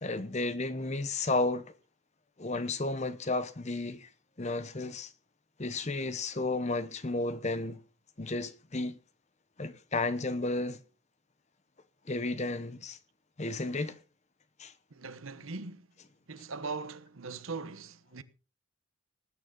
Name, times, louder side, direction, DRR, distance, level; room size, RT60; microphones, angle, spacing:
voice 1, 0.0-1.7 2.4-4.1 4.4-5.1 5.6-7.8 8.2-9.0 9.6-10.8 12.1-13.0 13.4-14.0 14.6-14.7, left 2 dB, 30° left, 0.8 m, -32 dB
voice 2, 14.9-15.9 16.3-18.2, right 4 dB, 75° right, 1.1 m, -40 dB
19.0 x 9.2 x 3.9 m
head